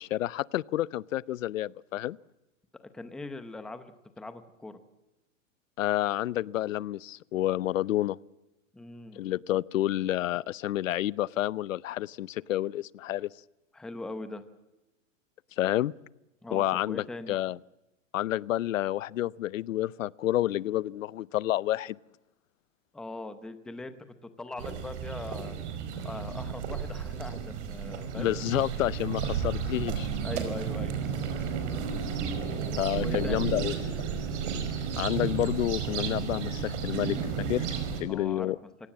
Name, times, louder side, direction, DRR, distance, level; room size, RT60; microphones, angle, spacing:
voice 1, 0.0-2.2 5.8-8.2 9.2-13.3 15.6-15.9 16.5-17.6 18.1-22.0 28.1-30.1 32.8-33.7 35.0-37.2 37.5-37.7 38.0-38.6, left 14 dB, 75° left, 23 dB, 0.7 m, -29 dB
voice 2, 2.8-4.8 8.7-9.2 13.7-14.4 16.4-17.3 22.9-24.0 24.2-25.5 26.0-28.3 30.2-31.2 33.0-33.5 38.1-38.5, left 2 dB, ahead, 10 dB, 0.7 m, -41 dB
sound 1, 24.6-38.0, right 6 dB, 60° right, 5.1 m, -32 dB
26.0 x 18.0 x 7.4 m, 1.0 s
supercardioid pair, 160°, 40 cm